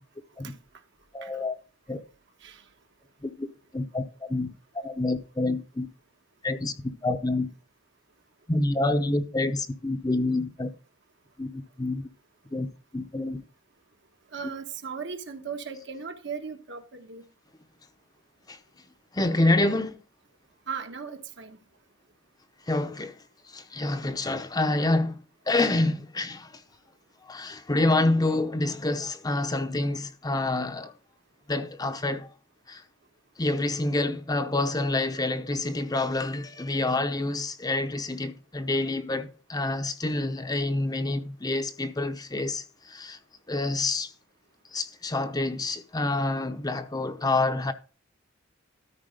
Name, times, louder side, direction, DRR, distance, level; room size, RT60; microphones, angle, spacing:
voice 1, 1.1-1.6 1.9-2.0 3.2-3.5 3.7-4.5 4.7-5.9 6.4-6.7 7.0-7.5 8.5-10.7 11.4-12.1 12.5-12.7 12.9-13.4 18.5-18.6 19.1-20.0 22.7-23.2 23.5-25.2 25.5-26.6 27.3-30.9 31.5-32.3 32.7-32.8 33.4-43.2 43.5-44.1 44.7-47.7, left 2 dB, 20° left, 0.7 m, -27 dB
voice 2, 14.3-17.2 20.7-21.6 24.1-24.2, right 6 dB, 60° right, 1.3 m, -37 dB
13.0 x 4.9 x 5.0 m
head